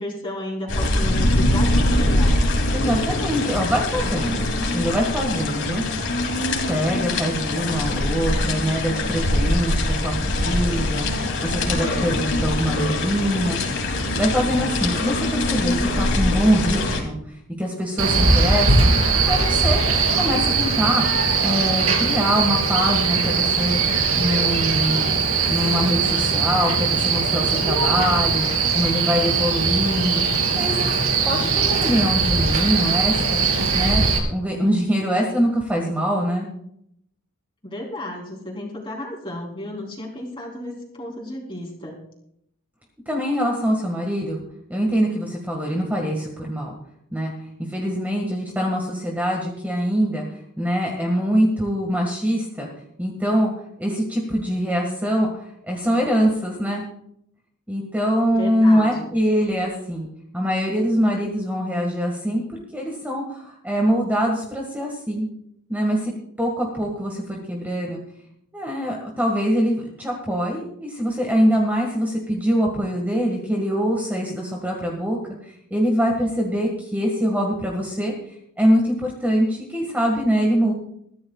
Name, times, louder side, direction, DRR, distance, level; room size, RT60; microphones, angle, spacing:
voice 1, 0.0-2.4 37.6-42.0 58.3-59.1, left 1 dB, 25° left, -1 dB, 3.7 m, -33 dB
sound 1, 0.7-17.0, left 1 dB, 65° left, 2.9 m, -23 dB
voice 2, 2.7-5.8 6.7-13.6 14.1-17.2 17.6-18.9 19.3-19.8 20.1-21.1 21.4-23.8 24.1-25.1 25.5-28.4 28.7-30.2 30.5-30.9 31.2-33.4 33.7-34.0 34.3-36.5 43.1-44.4 44.7-46.7 47.1-47.3 47.7-52.7 53.0-53.5 53.8-56.9 57.7-60.1 60.3-65.3 65.7-66.1 66.4-68.0 68.5-75.2 75.7-78.1 78.6-80.7, equal, 10° right, -1 dB, 1.8 m, -23 dB
Male speech man speaking, 18.0-34.2, right 4 dB, 75° right, 3.3 m, -20 dB
22.0 x 14.5 x 2.4 m, 0.73 s
head